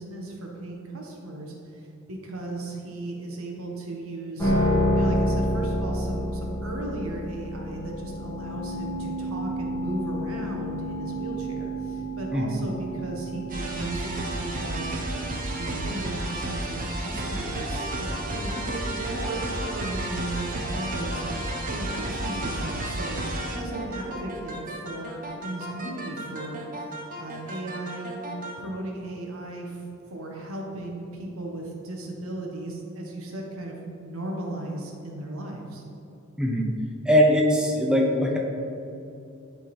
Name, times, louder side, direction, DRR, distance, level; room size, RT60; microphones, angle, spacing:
voice 1, 0.0-4.5 4.9-14.9 15.5-21.2 21.7-26.6 27.2-28.2 28.6-35.8, right 2 dB, 75° right, 0 dB, 1.2 m, -36 dB
sound 1, 4.4-16.7, equal, 20° left, 1.6 m, -30 dB
sound 2, 13.5-28.6, right 1 dB, 40° right, 0.9 m, -32 dB
voice 2, 36.4-36.7 37.1-38.4, equal, 5° right, -1 dB, 0.6 m, -21 dB
10.5 x 3.9 x 4.3 m, 2.8 s
head